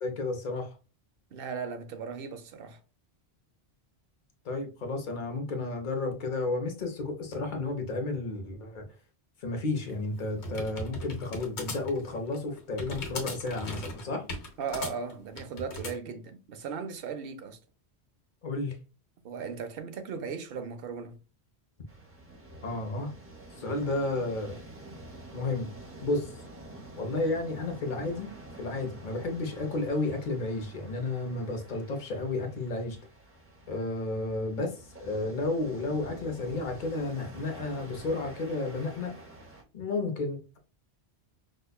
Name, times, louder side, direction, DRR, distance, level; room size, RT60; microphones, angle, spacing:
voice 1, 0.0-0.7 4.4-8.9 9.4-14.3 18.4-18.8 22.6-23.1 23.6-24.6 25.3-25.7 26.0-26.3 27.0-28.3 28.6-33.0 33.7-39.1 39.7-40.6, left 2 dB, 50° left, 0.8 m, -32 dB
voice 2, 1.3-2.8 14.6-17.6 19.2-21.2, right 5 dB, 65° right, 0.8 m, -37 dB
sound 1, 9.8-16.0, left 2 dB, 90° left, 1.1 m, -38 dB
sound 2, 21.9-39.6, right 2 dB, 15° right, 0.6 m, -48 dB
5.1 x 2.2 x 2.2 m
omnidirectional pair, 1.1 m